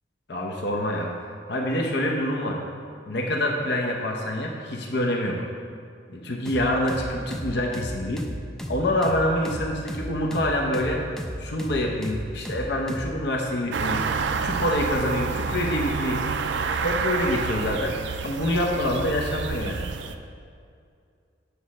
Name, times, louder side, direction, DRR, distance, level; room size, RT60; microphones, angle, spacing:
voice 1, 0.3-1.1 1.5-2.6 3.1-5.5 6.1-8.2 8.7-11.0 11.4-14.0 14.4-16.2 16.8-17.9 18.2-19.9, left 1 dB, 60° left, 1 dB, 0.8 m, -26 dB
sound 1, 6.5-13.2, equal, 5° left, 0.4 m, -34 dB
sound 2, 13.7-20.2, right 5 dB, 65° right, 0.4 m, -28 dB
8.4 x 6.2 x 4.2 m, 2.3 s
head